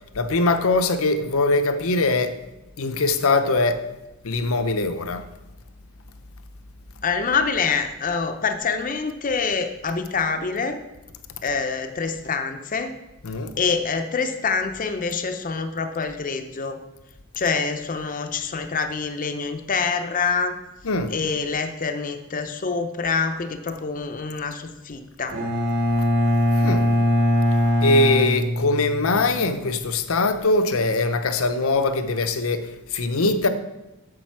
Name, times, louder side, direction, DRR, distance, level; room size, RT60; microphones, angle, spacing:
voice 1, 0.1-2.3 2.8-3.8 4.2-5.2 13.2-13.5 20.8-21.1 26.6-26.9 27.8-33.5, left 2 dB, 75° left, 0.7 m, -22 dB
voice 2, 7.0-10.8 11.4-12.9 13.6-16.8 17.4-20.6 21.1-25.4, left 5 dB, 40° left, 0.6 m, -26 dB
Bowed string instrument, 25.3-29.2, left 1 dB, 80° right, 2.6 m, -21 dB
8.6 x 6.7 x 4.6 m
head